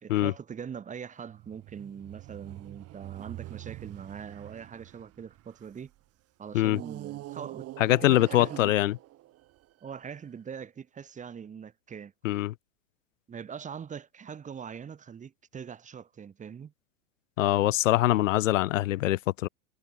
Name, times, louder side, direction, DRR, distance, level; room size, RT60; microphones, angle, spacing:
voice 1, 0.0-5.9 6.4-8.7 9.8-12.1 13.3-16.7, right 7 dB, 20° right, 1.2 m, -42 dB
sound 1, 1.2-5.9 6.7-10.1, right 16 dB, 40° right, 1.5 m, -45 dB
voice 2, 7.8-9.0 12.2-12.5 17.4-19.5, left 16 dB, 85° left, 0.7 m, -24 dB
hypercardioid pair, 110°, 37 cm